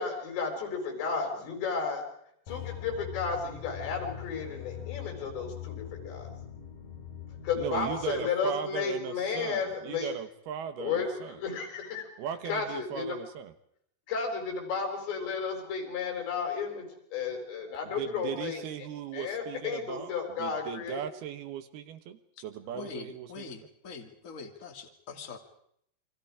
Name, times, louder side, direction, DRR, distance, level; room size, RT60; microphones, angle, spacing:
voice 1, 0.0-2.0 2.5-6.3 7.4-10.1 10.8-12.1 12.5-13.2 14.1-16.9 17.1-18.6 19.1-21.0, left 5 dB, 85° left, 3 dB, 7.0 m, -33 dB
sound 1, 2.5-8.3, left 10 dB, 55° left, 3.9 m, -42 dB
voice 2, 7.6-11.4 12.2-13.5 17.9-23.5, right 9 dB, 70° right, 10 dB, 3.0 m, -38 dB
voice 3, 22.7-25.4, left 5 dB, 25° left, 4 dB, 2.0 m, -43 dB
29.0 x 24.0 x 5.0 m, 0.70 s
omnidirectional pair, 4.9 m